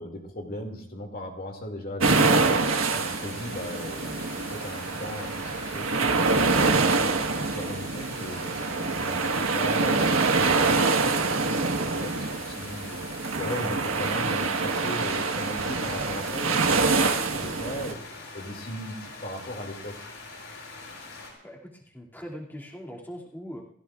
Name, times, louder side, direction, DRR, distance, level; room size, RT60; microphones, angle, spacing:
voice 1, 0.0-2.7 2.9-7.2 7.4-10.0 10.4-13.0 13.4-18.0 18.3-20.0, left 1 dB, 45° left, 2 dB, 2.4 m, -38 dB
sound 1, 2.0-21.3, left 3 dB, 70° left, 6.3 m, -43 dB
sound 2, 2.0-17.9, right 3 dB, 80° right, 1.5 m, -25 dB
voice 2, 21.4-23.6, equal, 10° left, -3 dB, 2.5 m, -41 dB
29.0 x 16.0 x 2.5 m, 0.76 s
head